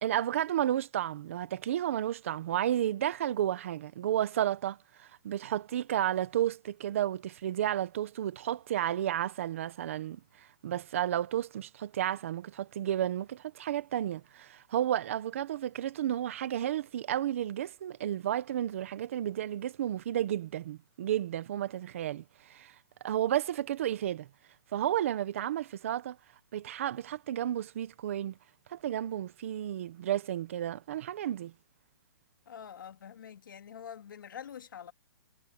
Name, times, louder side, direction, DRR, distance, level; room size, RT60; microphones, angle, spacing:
voice 1, 0.0-10.2 10.6-22.2 22.5-22.7 23.0-24.3 24.7-26.2 26.5-28.3 28.7-31.5, right 11 dB, 35° right, 1.0 m, -32 dB
voice 2, 32.5-34.9, left 8 dB, 65° left, 2.3 m, -46 dB
hypercardioid pair, 175°, 12 cm